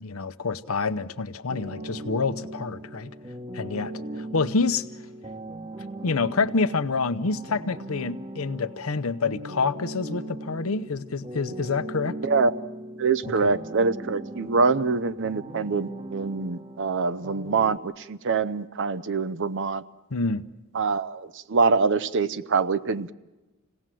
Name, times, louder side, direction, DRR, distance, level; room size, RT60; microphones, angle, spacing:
voice 1, 0.0-3.1 3.5-5.1 6.0-12.2 13.4-13.5 20.1-20.4, left 4 dB, 75° left, 12 dB, 0.8 m, -27 dB
sound 1, 1.5-17.8, right 1 dB, 30° right, 1.2 m, -39 dB
voice 2, 12.2-12.6 13.0-19.8 20.7-23.1, right 4 dB, 60° right, 14 dB, 0.7 m, -25 dB
26.5 x 17.5 x 7.6 m, 1.1 s
head